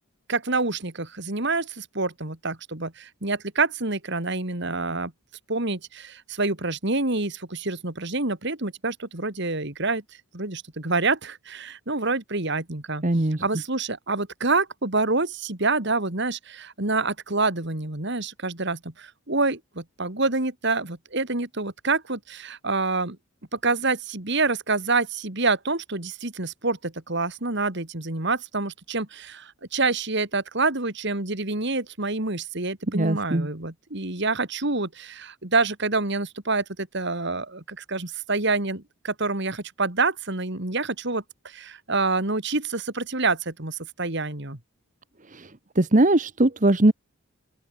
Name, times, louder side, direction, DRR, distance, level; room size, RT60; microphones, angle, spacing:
voice 1, 0.3-5.1 5.5-10.0 10.3-13.0 13.4-23.2 23.5-44.6, right 3 dB, 55° right, 2.7 m, -27 dB
voice 2, 13.0-13.4 32.9-33.5 45.3-46.9, right 1 dB, 35° right, 1.1 m, -21 dB
open air
head